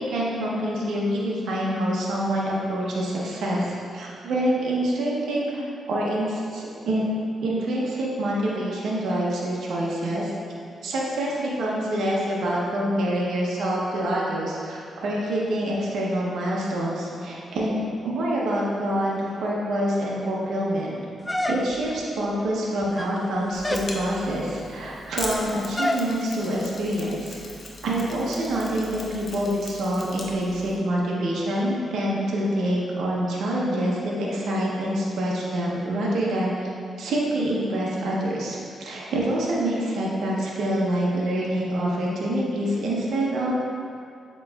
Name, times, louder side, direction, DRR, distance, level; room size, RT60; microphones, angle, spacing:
voice 1, 0.0-7.1 7.4-10.3 10.8-20.9 21.5-27.4 27.8-36.7 37.0-43.6, right 1 dB, 75° right, -4 dB, 0.7 m, -26 dB
sound 1, 21.3-22.0 22.8-23.3 23.6-23.9 25.8-26.1, left 1 dB, 15° left, 0.3 m, -27 dB
Mechanisms, 23.5-30.8, left 2 dB, 55° left, 0.7 m, -40 dB
7.6 x 3.0 x 2.3 m, 2.5 s
supercardioid pair, 55°, 0 cm